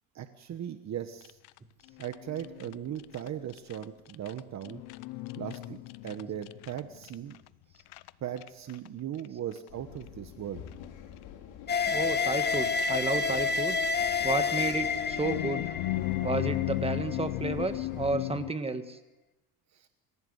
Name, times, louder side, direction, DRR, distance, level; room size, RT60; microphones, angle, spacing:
voice 1, 0.1-1.4 2.0-4.8 5.3-7.4 8.2-10.6 19.7-19.9, right 10 dB, 45° right, 9 dB, 1.3 m, -38 dB
sound 1, 1.2-1.6 1.8-3.8 4.1-7.5 7.8-8.1 8.4-8.9 9.2-9.3 9.5-9.6 10.7-10.8 12.4-12.9 14.9-18.5, left 17 dB, 75° left, 0.8 m, -35 dB
sound 2, 9.7-18.1, left 9 dB, 90° left, 5.0 m, -47 dB
sound 3, 11.7-17.0, left 5 dB, 25° left, 1.5 m, -29 dB
voice 2, 11.9-13.8 14.2-15.7 16.2-19.0, right 3 dB, 15° right, 9 dB, 1.6 m, -32 dB
26.5 x 16.0 x 8.1 m, 1.0 s
cardioid pair, 115°, 38 cm